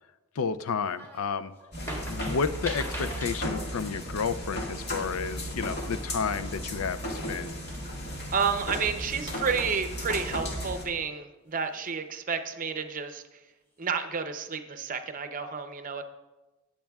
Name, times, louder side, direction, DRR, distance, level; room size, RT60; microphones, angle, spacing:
voice 1, 0.4-1.5 2.0-7.5, left 5 dB, 70° left, 12 dB, 0.5 m, -31 dB
sound 1, 0.8-1.3 1.6-3.7 6.3-6.6 7.1-7.2 7.7-8.3 9.7-10.4 11.6-12.2 12.7-12.9, equal, 10° left, 1.9 m, -40 dB
sound 2, 1.7-10.9, equal, 50° left, 1.8 m, -35 dB
voice 2, 8.3-13.2 13.8-16.0, right 5 dB, 35° right, 8 dB, 0.6 m, -30 dB
19.0 x 7.4 x 2.3 m, 1.1 s
head